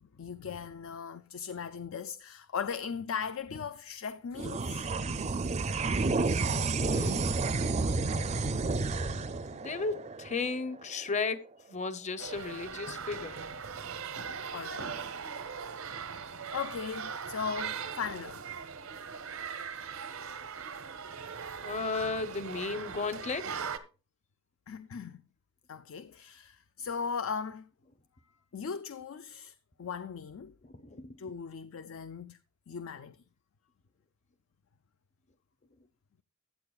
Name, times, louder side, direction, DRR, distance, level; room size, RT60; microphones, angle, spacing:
voice 1, 0.0-4.9 14.5-14.9 15.3-15.7 16.5-18.4 24.7-25.2 25.7-27.7 28.5-30.5 31.2-32.4 32.7-33.2, left 6 dB, 70° left, 0.4 m, -38 dB
sound 1, 4.3-11.1, right 3 dB, 30° right, 0.5 m, -31 dB
voice 2, 6.8-7.4 9.5-13.4 13.8-13.9 21.6-23.5 30.6-31.1, left 4 dB, 35° left, 0.7 m, -35 dB
sound 2, 12.2-23.8, right 6 dB, 80° right, 0.9 m, -40 dB
15.0 x 8.7 x 2.3 m
head